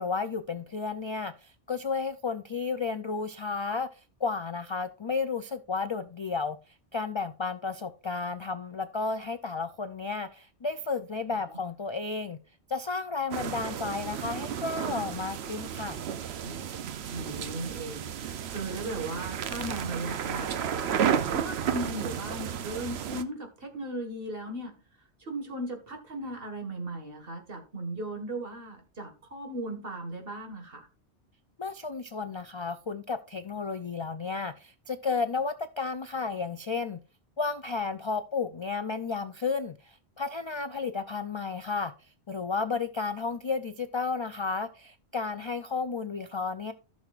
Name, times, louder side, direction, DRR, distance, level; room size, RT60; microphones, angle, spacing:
voice 1, 0.0-12.4 12.7-16.0 31.6-37.0 37.4-46.7, left 4 dB, 50° left, 0.3 m, -32 dB
sound 1, 13.3-23.2, right 8 dB, 75° right, 0.9 m, -32 dB
voice 2, 16.4-20.9 21.3-24.7 25.2-30.9, right 1 dB, 60° right, 1.9 m, -37 dB
14.5 x 6.3 x 2.4 m
omnidirectional pair, 1.1 m